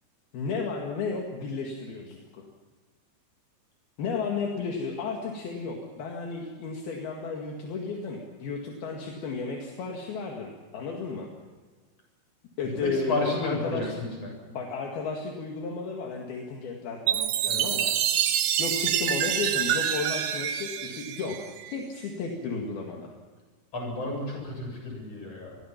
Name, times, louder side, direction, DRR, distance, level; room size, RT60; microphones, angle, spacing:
voice 1, 0.3-2.5 4.0-11.3 12.6-14.0 14.5-18.0 18.6-21.4 21.7-23.1, left 4 dB, 70° left, 1 dB, 3.9 m, -33 dB
voice 2, 12.6-14.3 17.5-17.7 23.7-25.6, left 2 dB, 40° left, 0 dB, 8.4 m, -32 dB
Chime, 17.1-21.8, right 10 dB, 70° right, 2.9 m, -27 dB
27.5 x 21.0 x 5.9 m, 1.4 s
omnidirectional pair, 4.7 m